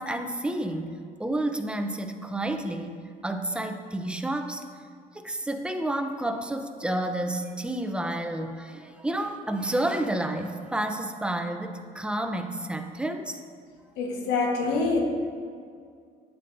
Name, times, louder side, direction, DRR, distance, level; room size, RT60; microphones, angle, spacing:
voice 1, 0.0-13.4, right 1 dB, 5° right, 6 dB, 0.6 m, -30 dB
voice 2, 14.0-15.0, left 3 dB, 85° left, 0 dB, 1.3 m, -25 dB
11.5 x 8.3 x 2.6 m, 2.2 s
cardioid pair, 110°, 17 cm